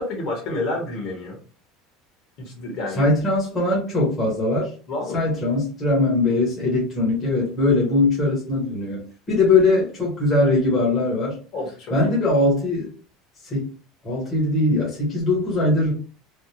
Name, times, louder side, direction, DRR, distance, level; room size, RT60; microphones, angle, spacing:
voice 1, 0.0-1.4 2.4-3.1 4.9-5.2 11.5-11.9, left 2 dB, 45° left, -1 dB, 1.5 m, -29 dB
voice 2, 3.0-4.7 5.1-11.4 11.9-12.9 13.4-13.6 14.0-15.9, left 2 dB, 20° left, -4 dB, 1.2 m, -21 dB
3.3 x 2.4 x 2.8 m, 0.37 s
cardioid pair, 170°, 0 cm